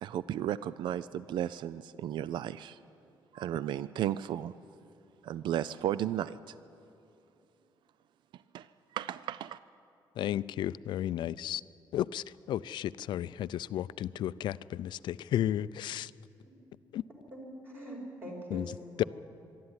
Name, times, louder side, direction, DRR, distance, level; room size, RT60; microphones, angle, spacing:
voice 1, 0.0-2.8 3.3-4.5 5.2-6.5 8.5-8.7 8.9-9.6, right 11 dB, 70° right, 0.4 m, -34 dB
voice 2, 10.2-11.6 11.9-16.1 16.9-17.0 18.5-18.7 19.0-19.1, left 11 dB, 70° left, 0.4 m, -33 dB
voice 3, 17.3-19.1, right 1 dB, 30° right, 4.9 m, -43 dB
24.5 x 12.0 x 9.7 m
cardioid pair, 150°, 8 cm